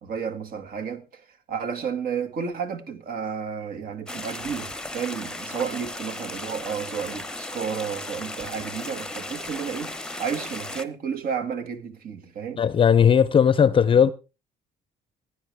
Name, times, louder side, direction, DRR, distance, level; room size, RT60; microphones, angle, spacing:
voice 1, 0.0-12.6, right 7 dB, 60° right, 2.0 m, -32 dB
sound 1, 4.1-10.8, left 2 dB, 5° left, 0.9 m, -36 dB
voice 2, 12.6-14.1, left 7 dB, 30° left, 0.6 m, -17 dB
16.0 x 10.0 x 3.4 m
cardioid pair, 110°, 17 cm